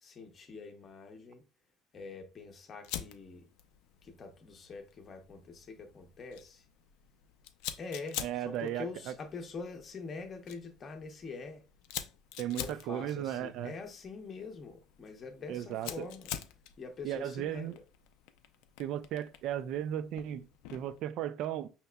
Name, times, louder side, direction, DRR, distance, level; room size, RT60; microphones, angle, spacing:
voice 1, 0.0-1.4 1.9-3.5 4.0-6.7 7.8-11.6 12.6-16.3 16.8-17.8, left 4 dB, 30° left, 0.6 m, -44 dB
Fire, 2.8-21.0, left 11 dB, 90° left, 0.4 m, -47 dB
voice 2, 8.2-9.1 12.4-13.7 15.5-16.1 17.0-17.8 18.8-21.7, right 11 dB, 55° right, 0.3 m, -36 dB
5.6 x 2.9 x 2.2 m
cardioid pair, 160°, 0 cm